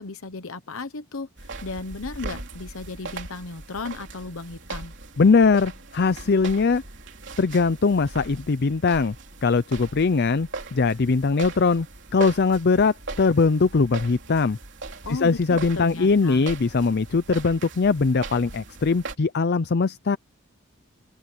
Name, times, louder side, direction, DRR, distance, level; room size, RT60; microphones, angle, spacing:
voice 1, 0.0-4.9 15.0-16.5, left 3 dB, 65° left, 1.0 m, -35 dB
sound 1, 1.4-19.1, right 3 dB, 55° right, 3.4 m, -39 dB
voice 2, 5.2-6.8 7.4-9.1 9.4-11.9 12.1-14.6 15.1-20.2, left 4 dB, 50° left, 0.5 m, -21 dB
open air
head